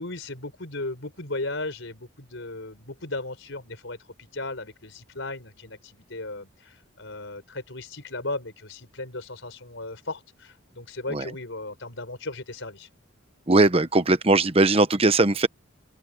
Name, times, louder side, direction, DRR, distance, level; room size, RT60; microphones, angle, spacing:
voice 1, 0.0-12.9, left 2 dB, 65° left, 5.5 m, -36 dB
voice 2, 13.5-15.5, right 2 dB, 30° right, 1.0 m, -19 dB
open air
head